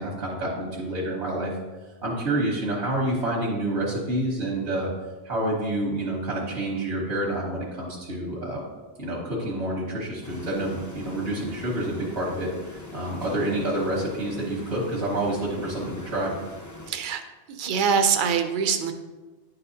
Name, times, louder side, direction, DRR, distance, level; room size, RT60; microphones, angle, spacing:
voice 1, 0.0-1.5 2.0-4.9 5.2-8.6 9.0-16.3, right 1 dB, 85° right, -4 dB, 1.5 m, -28 dB
sound 1, 10.2-16.9, left 2 dB, 20° left, 0.5 m, -42 dB
voice 2, 16.9-17.2 17.5-18.9, right 6 dB, 55° right, 7 dB, 0.7 m, -23 dB
10.0 x 4.1 x 2.7 m, 1.2 s
omnidirectional pair, 1.1 m